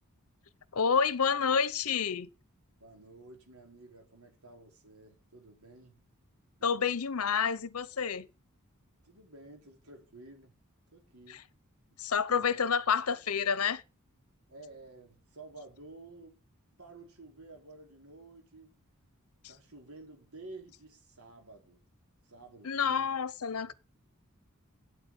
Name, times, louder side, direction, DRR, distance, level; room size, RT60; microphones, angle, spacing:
voice 1, 0.7-2.3 6.6-8.3 11.3-11.4 12.0-13.8 22.6-23.7, left 6 dB, 80° left, 0.8 m, -29 dB
voice 2, 2.8-6.0 6.6-6.7 9.0-10.5 10.9-11.5 12.3-12.6 14.5-16.4 16.8-18.7 19.5-21.8 22.2-23.2 23.5-23.7, right 2 dB, 80° right, 4.6 m, -52 dB
8.8 x 8.0 x 8.3 m
head